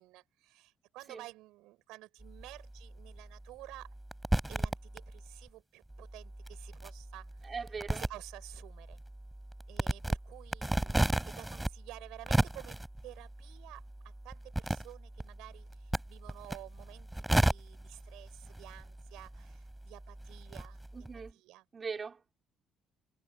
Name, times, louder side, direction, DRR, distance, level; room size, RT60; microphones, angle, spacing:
voice 1, 0.0-3.9 4.5-7.5 7.9-9.0 9.7-11.0 11.3-21.1 21.3-21.6, right 18 dB, 85° right, 4.4 m, -52 dB
sound 1, 2.2-5.5 5.9-21.3, right 1 dB, 10° right, 3.2 m, -36 dB
voice 2, 7.4-8.0 20.9-21.4 21.7-22.4, right 5 dB, 40° right, 3.9 m, -41 dB
supercardioid pair, 75°, 0 cm